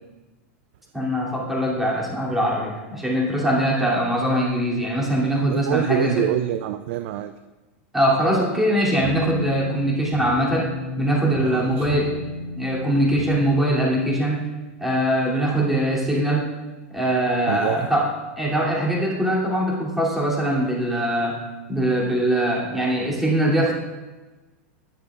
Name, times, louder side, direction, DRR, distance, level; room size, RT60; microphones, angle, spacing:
voice 1, 0.9-6.3 7.9-12.2 12.6-14.4 14.8-16.5 16.9-18.1 18.4-21.4 21.7-23.7, right 1 dB, 5° right, -5 dB, 3.0 m, -22 dB
voice 2, 5.5-7.3 11.4-12.0 17.5-17.9, right 12 dB, 60° right, 10 dB, 0.5 m, -25 dB
sound 1, 9.0-14.2, left 2 dB, 65° left, 3.0 m, -33 dB
19.0 x 6.8 x 2.5 m, 1.2 s
supercardioid pair, 130°, 7 cm